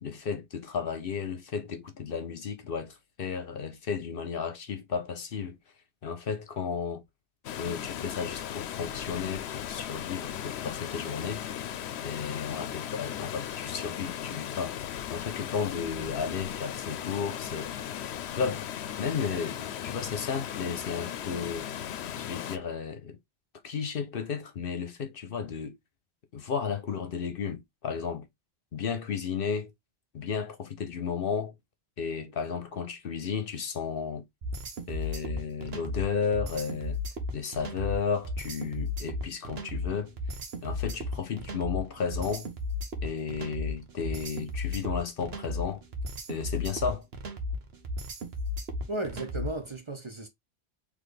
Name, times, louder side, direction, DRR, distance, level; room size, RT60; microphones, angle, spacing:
voice 1, 0.0-5.6 6.0-7.0 7.6-11.4 12.0-14.8 15.1-17.7 18.3-18.7 19.0-21.7 22.2-23.2 23.6-25.8 26.3-28.3 28.7-29.7 30.1-31.5 32.0-34.2 34.9-37.0 37.3-40.1 40.6-42.5 43.0-45.8 46.3-47.1, left 6 dB, 60° left, 1.0 m, -33 dB
Water, 7.4-22.6, left 10 dB, 90° left, 0.8 m, -37 dB
sound 1, 34.4-49.7, left 2 dB, 75° right, 1.2 m, -34 dB
voice 2, 48.9-50.3, right 2 dB, 30° right, 0.8 m, -35 dB
4.1 x 3.3 x 3.2 m
omnidirectional pair, 1.1 m